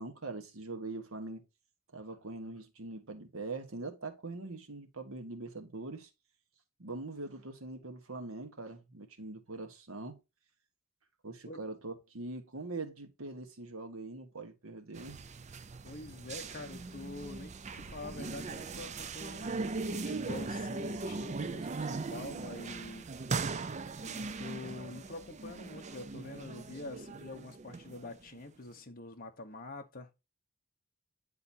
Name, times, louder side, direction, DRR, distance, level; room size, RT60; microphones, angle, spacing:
voice 1, 0.0-1.4 1.9-6.1 6.8-10.2 11.2-15.2 17.8-17.9, right 3 dB, 80° right, 1.4 m, -43 dB
sound 1, 14.9-28.4, right 3 dB, 35° right, 0.5 m, -39 dB
voice 2, 15.8-23.1 24.0-30.1, left 2 dB, 45° left, 1.0 m, -46 dB
9.6 x 4.0 x 2.7 m
head